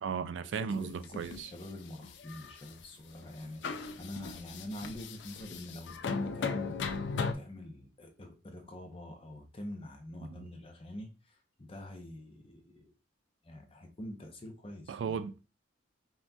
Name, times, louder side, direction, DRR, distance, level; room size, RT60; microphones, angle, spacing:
voice 1, 0.0-1.5 10.3-10.5 14.9-15.5, right 6 dB, 80° right, 0.4 m, -36 dB
voice 2, 0.6-7.1 7.3-12.9 13.4-15.2, left 1 dB, 30° left, 0.7 m, -46 dB
sound 1, 0.9-1.5 2.0-2.8 3.2-3.3 3.6-7.3, left 4 dB, 70° left, 0.4 m, -37 dB
5.6 x 2.8 x 2.3 m
head